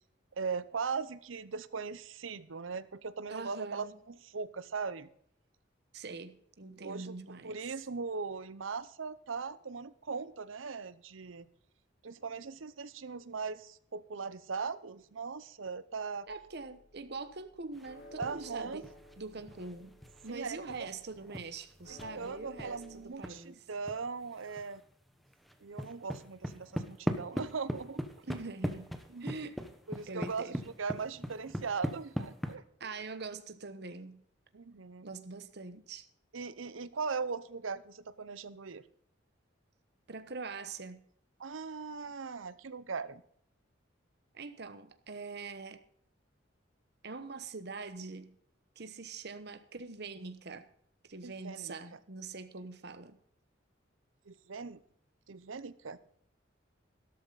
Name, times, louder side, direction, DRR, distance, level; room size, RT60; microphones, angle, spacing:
voice 1, 0.4-5.1 6.8-7.1 7.4-11.5 12.0-16.3 18.2-18.9 20.3-20.9 22.2-24.8 25.6-28.0 29.1-29.3 29.9-32.6 34.5-35.1 36.3-38.8 41.4-43.2 51.2-51.7 54.3-54.8 55.3-56.0, right 5 dB, 85° right, 16 dB, 0.7 m, -39 dB
voice 2, 3.3-4.0 5.9-7.6 16.3-18.9 19.2-23.6 28.2-29.6 30.1-30.6 32.8-34.2 35.0-36.1 40.1-41.1 44.3-45.8 47.0-48.4 48.8-50.7 51.0-53.2, right 4 dB, 55° right, 11 dB, 1.1 m, -44 dB
sound 1, 16.3-23.1, equal, 50° left, 2.6 m, -55 dB
sound 2, 17.7-18.5 18.8-23.4 23.9-24.0 24.2-24.8 25.1-32.5, equal, ahead, 1.1 m, -40 dB
13.0 x 12.5 x 4.0 m, 0.64 s
head